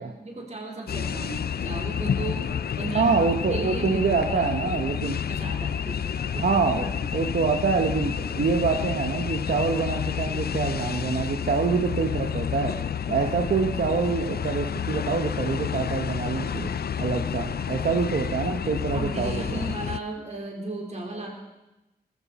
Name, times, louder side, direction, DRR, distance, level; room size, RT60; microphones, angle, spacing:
voice 1, 0.0-2.5 2.8-3.1 3.5-4.8 5.3-6.4 7.0-7.3 18.9-21.3, right 2 dB, 45° right, -1 dB, 4.0 m, -36 dB
sound 1, 0.9-20.0, left 8 dB, 70° left, 0.5 m, -30 dB
voice 2, 2.9-5.2 6.3-12.7 13.1-16.7 17.0-19.6, right 5 dB, 65° right, 2 dB, 1.1 m, -26 dB
19.5 x 14.5 x 4.2 m, 0.99 s
wide cardioid pair, 95°, 17 cm